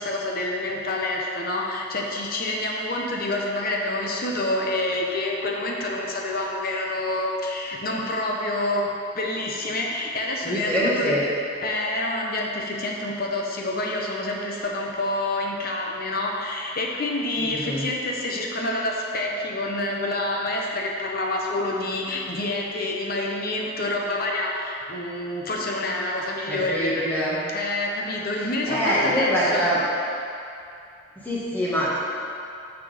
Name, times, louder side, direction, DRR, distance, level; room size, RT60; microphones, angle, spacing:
voice 1, 0.0-11.1 11.6-27.1 27.5-29.8, left 2 dB, 45° left, -1 dB, 0.9 m, -27 dB
voice 2, 10.4-11.2 17.4-17.8 26.5-27.4 28.7-29.8 31.2-32.0, equal, 10° left, -9 dB, 1.6 m, -24 dB
6.1 x 6.1 x 5.1 m, 2.6 s
head